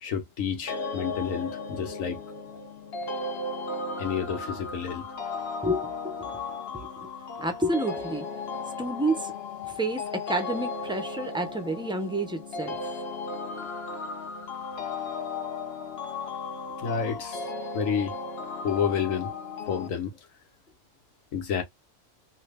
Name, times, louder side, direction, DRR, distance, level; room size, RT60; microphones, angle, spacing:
voice 1, 0.0-2.2 4.0-5.1 16.8-18.2 18.6-19.3 19.7-20.2 21.3-21.6, left 7 dB, 75° left, 1.3 m, -30 dB
sound 1, 0.7-19.9, left 3 dB, 55° left, 1.0 m, -35 dB
voice 2, 5.6-6.1 7.0-7.1 7.4-8.3 8.8-9.3 9.6-12.8, right 1 dB, 5° right, 0.5 m, -29 dB
2.8 x 2.8 x 3.3 m
omnidirectional pair, 1.4 m